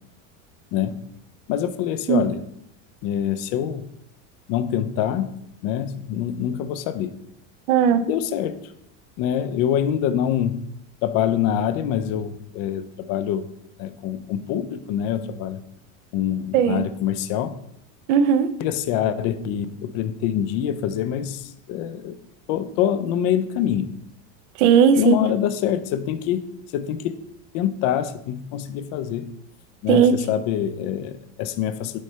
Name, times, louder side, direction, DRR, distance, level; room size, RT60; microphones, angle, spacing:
voice 1, 1.5-2.4 3.0-3.9 4.5-5.4 5.6-7.1 8.0-8.7 9.2-10.6 11.0-13.5 13.8-15.6 16.1-17.6 18.6-22.2 22.5-23.9 25.0-26.4 26.7-27.2 27.5-29.3 29.8-32.0, left 10 dB, 40° left, 10 dB, 0.4 m, -25 dB
voice 2, 7.7-8.0 16.5-16.9 18.1-18.5 24.6-25.1 29.9-30.1, right 8 dB, 70° right, 11 dB, 0.7 m, -16 dB
6.4 x 3.2 x 5.5 m, 0.74 s
supercardioid pair, 160°, 40 cm